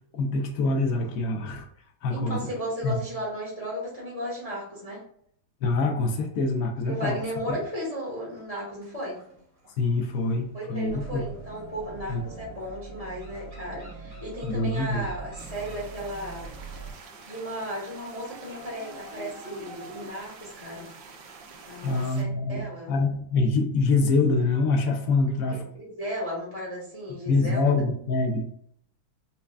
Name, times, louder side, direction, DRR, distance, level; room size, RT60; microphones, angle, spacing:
voice 1, 0.1-1.7 2.0-2.4 2.8-3.0 5.6-7.2 9.8-11.2 12.1-12.2 14.4-15.0 21.8-25.6 27.3-28.4, left 3 dB, 75° left, 4 dB, 0.7 m, -25 dB
voice 2, 2.1-5.0 6.8-9.2 10.5-16.6 17.2-20.9 21.7-23.1 25.5-27.6, equal, 25° left, -6 dB, 0.9 m, -35 dB
sound 1, 7.0-8.0 8.4-20.1, right 1 dB, 30° right, 1.1 m, -50 dB
sound 2, 10.8-16.9, right 4 dB, 55° right, 1.2 m, -42 dB
sound 3, 15.4-22.2, right 4 dB, 75° right, 1.3 m, -47 dB
5.5 x 2.3 x 2.3 m, 0.65 s
omnidirectional pair, 2.1 m